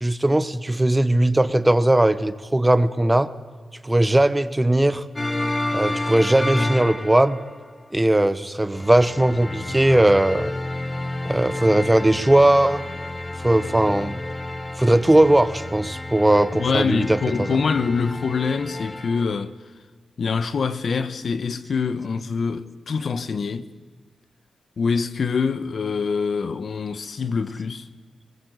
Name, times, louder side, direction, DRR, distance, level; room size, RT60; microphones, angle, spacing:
voice 1, 0.0-3.3 3.8-5.0 5.7-7.4 7.9-10.5 11.2-12.8 13.4-14.2 14.8-17.6, right 1 dB, 15° right, 1.0 m, -19 dB
sound 1, 5.2-7.6 8.7-19.3, left 1 dB, 20° left, 1.1 m, -30 dB
voice 2, 16.5-19.5 20.2-23.7 24.8-27.9, left 5 dB, 65° left, 1.1 m, -25 dB
21.0 x 20.0 x 8.2 m
wide cardioid pair, 95°, 0 cm